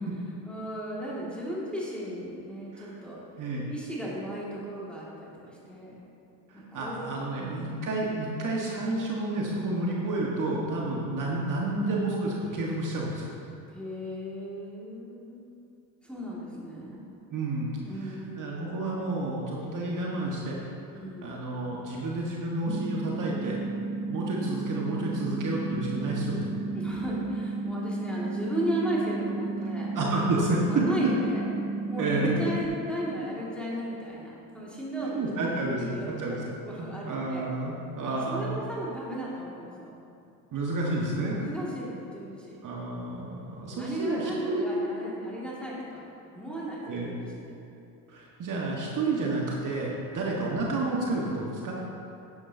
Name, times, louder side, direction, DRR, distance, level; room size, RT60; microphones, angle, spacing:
voice 1, 0.4-3.2 3.7-6.0 6.5-7.9 13.7-15.5 16.0-17.0 17.8-18.7 20.9-21.4 26.7-30.0 30.7-31.4 31.9-37.5 38.1-39.9 41.4-42.6 43.7-47.6 50.2-50.3, right 1 dB, ahead, -7 dB, 2.2 m, -36 dB
voice 2, 6.5-13.3 17.3-17.7 18.0-20.6 20.9-23.6 24.1-26.5 29.9-30.6 32.0-32.5 35.0-36.4 36.8-38.6 40.5-41.4 42.6-44.6 46.8-47.1 48.1-51.8, right 2 dB, 40° right, -3 dB, 1.6 m, -30 dB
sound 1, 22.7-32.7, right 3 dB, 20° right, 0.5 m, -33 dB
10.5 x 9.7 x 2.8 m, 2.6 s
hypercardioid pair, 80°, 48 cm